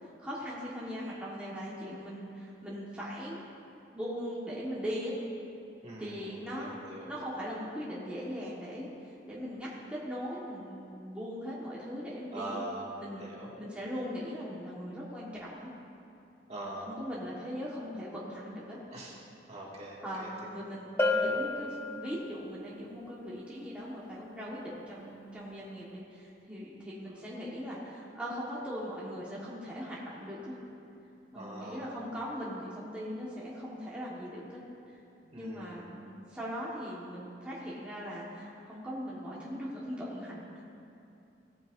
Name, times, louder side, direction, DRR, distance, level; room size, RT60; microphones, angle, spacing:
voice 1, 0.0-3.4 3.9-5.1 6.0-6.7 7.1-12.6 13.0-13.3 13.6-15.7 16.8-18.8 20.0-30.6 31.3-34.6 35.3-40.6, equal, 5° right, -8 dB, 1.4 m, -40 dB
voice 2, 5.8-7.1 12.3-12.9 13.1-13.5 16.5-16.9 18.9-19.2 19.5-20.3 21.1-21.4 31.3-31.9 35.2-35.8, right 1 dB, 40° right, -5 dB, 2.1 m, -42 dB
Bell, 21.0-22.6, left 2 dB, 15° left, 0.6 m, -31 dB
17.0 x 9.0 x 2.6 m, 2.6 s
head